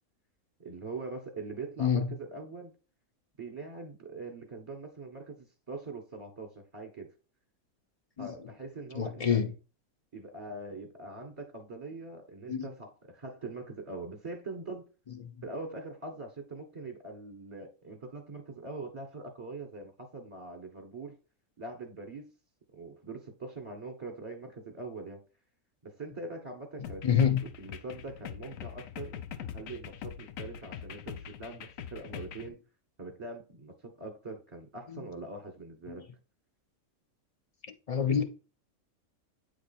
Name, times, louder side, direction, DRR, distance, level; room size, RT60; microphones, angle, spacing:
voice 1, 0.6-2.7 3.4-7.1 8.2-9.4 10.1-14.8 15.4-21.2 21.6-22.3 22.7-25.2 25.8-32.6 33.0-36.1, right 3 dB, 20° right, 1.2 m, -43 dB
voice 2, 9.0-9.5 12.5-12.7 15.2-15.3 27.0-27.4 34.9-35.1 37.7-38.2, left 8 dB, 45° left, 0.5 m, -27 dB
sound 1, 26.8-32.5, left 9 dB, 70° left, 1.0 m, -43 dB
8.8 x 3.3 x 4.2 m
omnidirectional pair, 1.5 m